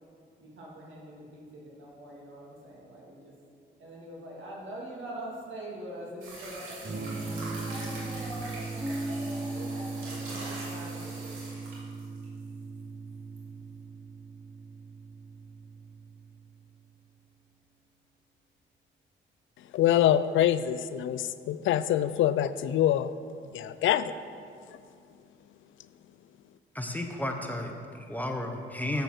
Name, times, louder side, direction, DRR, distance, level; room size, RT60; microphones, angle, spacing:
voice 1, 0.4-3.3 3.8-11.3, right 1 dB, 70° right, -3 dB, 2.5 m, -43 dB
sound 1, 6.2-12.4 13.4-13.5, right 2 dB, 90° right, 2.4 m, -43 dB
Electric guitar / Strum, 6.8-16.6, right 4 dB, 45° right, 1.6 m, -40 dB
Piano, 8.8-16.0, right 1 dB, 10° right, 0.5 m, -41 dB
voice 2, 19.7-23.1 23.5-24.1, left 11 dB, 75° left, 14 dB, 0.4 m, -25 dB
voice 3, 26.7-29.0, left 1 dB, 10° left, 3 dB, 1.0 m, -33 dB
7.7 x 6.6 x 6.5 m, 2.3 s
cardioid pair, 80°, 20 cm